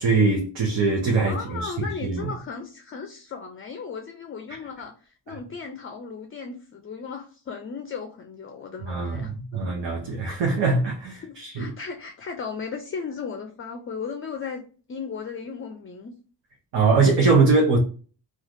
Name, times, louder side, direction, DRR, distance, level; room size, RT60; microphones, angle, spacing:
voice 1, 0.0-2.3 8.9-11.7 16.7-17.8, right 4 dB, 70° right, 0.9 m, -22 dB
voice 2, 1.3-9.3 11.2-14.6 14.9-16.1, left 5 dB, 30° left, 0.4 m, -36 dB
3.2 x 2.4 x 2.5 m
cardioid pair, 90°, 45 cm